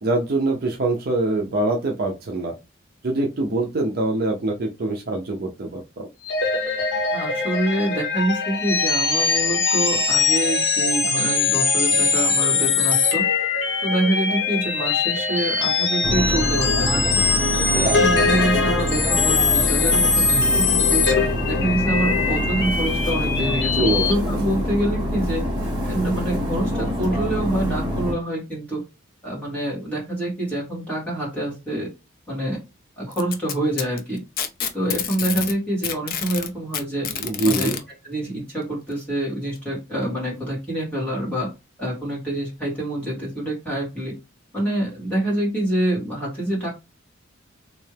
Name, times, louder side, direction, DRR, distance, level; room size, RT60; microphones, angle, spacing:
voice 1, 0.0-2.5 3.0-6.1 23.7-24.1 37.2-37.8, right 2 dB, 45° right, 2 dB, 0.5 m, -24 dB
sound 1, 6.2-24.1, left 4 dB, 65° left, 1.0 m, -22 dB
voice 2, 7.1-13.2 13.8-17.2 17.7-21.1 21.4-25.4 25.8-28.8 29.2-31.9 32.3-32.6 33.0-34.2 34.7-37.1 37.4-37.7 38.0-41.5 41.8-44.1 44.5-46.7, right 1 dB, 5° left, -6 dB, 2.1 m, -26 dB
sound 2, 16.0-28.1, equal, 20° right, 1.2 m, -25 dB
Packing tape duct tape, 33.1-35.6 35.8-37.8 38.9-39.0 39.6-39.7 40.5-40.6, left 8 dB, 45° left, 0.5 m, -28 dB
3.3 x 2.7 x 3.3 m, 0.26 s
head